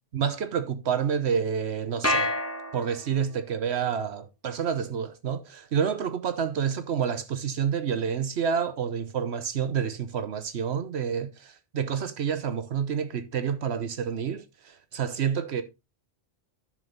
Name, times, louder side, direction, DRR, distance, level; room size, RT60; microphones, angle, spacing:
voice 1, 0.1-2.3 2.7-15.6, right 7 dB, 75° right, 1.1 m, -29 dB
sound 1, 2.0-3.4, left 1 dB, 15° left, 2.3 m, -28 dB
11.0 x 6.3 x 3.9 m
omnidirectional pair, 1.1 m